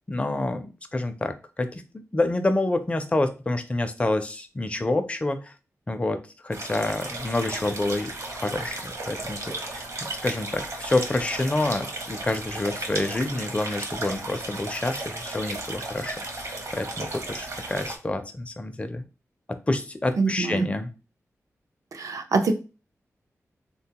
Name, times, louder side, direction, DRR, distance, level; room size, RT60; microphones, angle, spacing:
voice 1, 0.1-5.5 5.9-9.8 10.2-16.5 16.7-19.0 19.7-20.9, left 2 dB, 20° left, 8 dB, 0.4 m, -28 dB
sound 1, 6.5-18.0, right 2 dB, 65° right, 0.8 m, -35 dB
voice 2, 20.2-20.7 21.9-22.5, right 4 dB, 80° right, 6 dB, 0.5 m, -24 dB
3.5 x 2.2 x 2.8 m, 0.32 s
wide cardioid pair, 90°, 6 cm